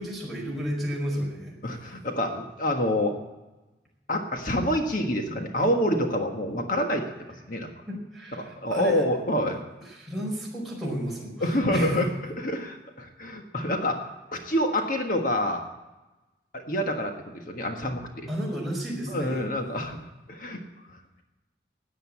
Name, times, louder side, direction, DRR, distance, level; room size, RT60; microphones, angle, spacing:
voice 1, 0.0-1.5 7.9-9.0 9.8-12.0 18.3-19.4, equal, ahead, -2 dB, 5.0 m, -33 dB
voice 2, 1.6-3.1 4.1-7.0 7.5-7.7 8.3-9.6 11.4-14.0 14.3-15.6 16.5-18.3 19.1-20.0 20.3-20.6, left 1 dB, 50° left, 3 dB, 1.5 m, -27 dB
14.0 x 9.4 x 8.5 m, 1.1 s
head